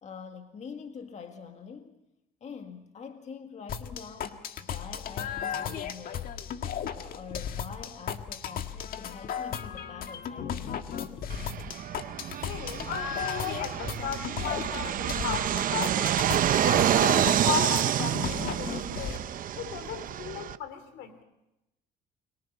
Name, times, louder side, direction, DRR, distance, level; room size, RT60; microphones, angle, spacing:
voice 1, 0.0-2.0 2.4-6.4 6.9-11.4, left 6 dB, 45° left, 5 dB, 2.0 m, -45 dB
sound 1, 3.7-19.2, left 8 dB, 60° left, 1.7 m, -35 dB
Fixed-wing aircraft airplane, 11.3-20.6, right 10 dB, 55° right, 0.8 m, -28 dB
voice 2, 12.4-16.2 16.6-19.2 19.5-21.2, left 8 dB, 80° left, 11 dB, 3.2 m, -36 dB
29.5 x 23.0 x 5.6 m, 0.91 s
cardioid pair, 110°, 17 cm